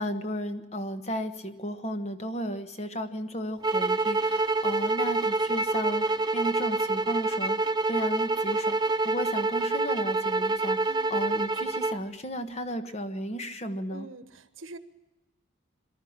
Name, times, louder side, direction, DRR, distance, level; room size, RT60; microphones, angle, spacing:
voice 1, 0.0-6.1 6.3-14.1, equal, 35° left, 8 dB, 1.3 m, -34 dB
sound 1, 3.6-12.0, right 3 dB, 20° right, 0.6 m, -27 dB
voice 2, 13.9-14.8, right 3 dB, 80° right, 11 dB, 1.3 m, -44 dB
23.0 x 13.0 x 8.8 m, 1.0 s
head